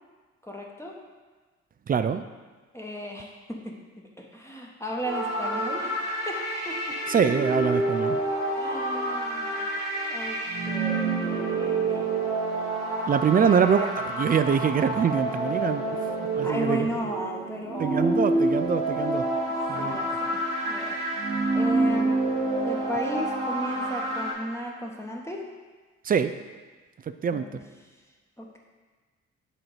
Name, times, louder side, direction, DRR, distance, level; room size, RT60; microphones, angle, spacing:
voice 1, 0.4-1.0 2.7-3.8 4.2-6.0 6.2-7.0 8.5-9.7 10.1-12.1 13.4-14.0 16.4-18.3 19.8-21.0 21.5-22.1 22.6-25.4 27.3-27.6 28.4-28.6, equal, 5° left, -1 dB, 1.1 m, -35 dB
voice 2, 1.9-2.2 7.1-8.2 13.1-13.9 14.2-15.8 16.4-16.9 17.8-19.2 19.7-20.0 26.0-26.3 27.2-27.4, right 7 dB, 25° right, 11 dB, 0.4 m, -24 dB
sound 1, 5.0-24.3, right 2 dB, 80° right, 1.3 m, -28 dB
7.8 x 2.9 x 4.8 m, 1.3 s
hypercardioid pair, 40°, 37 cm